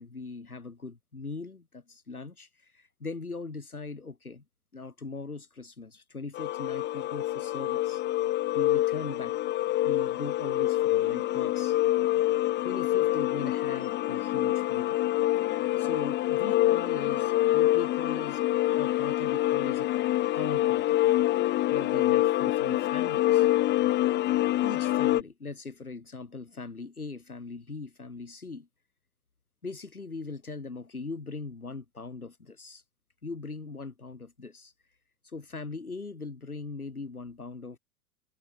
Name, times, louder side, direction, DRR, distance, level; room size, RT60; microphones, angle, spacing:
voice 1, 0.0-4.4 4.7-8.0 8.5-9.4 9.8-11.8 12.6-15.1 15.8-18.4 18.8-19.9 20.3-21.0 21.7-23.5 24.6-28.7 29.6-32.8 33.2-34.7 35.2-37.8, left 3 dB, 85° left, 6.9 m, -40 dB
sound 1, 6.3-25.2, left 15 dB, 25° left, 0.8 m, -26 dB
figure-of-eight pair, 90°, 43 cm